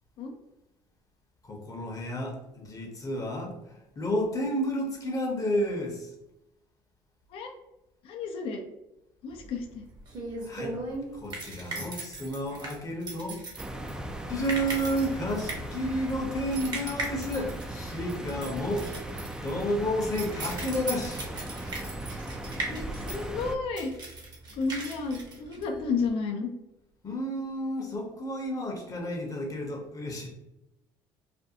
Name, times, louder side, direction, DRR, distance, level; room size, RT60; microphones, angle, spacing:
voice 1, 1.4-6.1 10.4-10.8 11.1-13.5 14.3-19.1 19.4-21.3 27.0-30.3, equal, 30° left, 0 dB, 0.7 m, -31 dB
voice 2, 8.0-8.6 9.2-9.8 22.7-23.9 24.6-26.5, left 4 dB, 55° left, 4 dB, 0.4 m, -32 dB
sound 1, 9.4-26.1, right 2 dB, 40° right, 0.9 m, -39 dB
sound 2, 13.6-23.5, right 1 dB, 5° right, 0.3 m, -38 dB
2.5 x 2.2 x 2.7 m, 0.91 s
hypercardioid pair, 70°, 11 cm